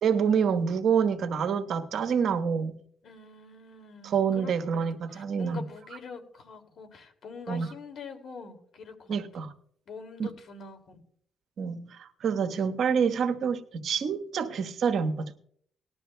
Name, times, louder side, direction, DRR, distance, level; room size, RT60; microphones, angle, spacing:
voice 1, 0.0-2.8 4.0-5.6 7.5-7.7 9.1-9.5 10.2-10.3 11.6-15.3, right 6 dB, 65° right, 1.1 m, -27 dB
voice 2, 3.0-4.8 5.1-9.2 9.9-11.0, left 5 dB, 65° left, 2.4 m, -44 dB
19.5 x 12.0 x 2.2 m
cardioid pair, 90°, 0 cm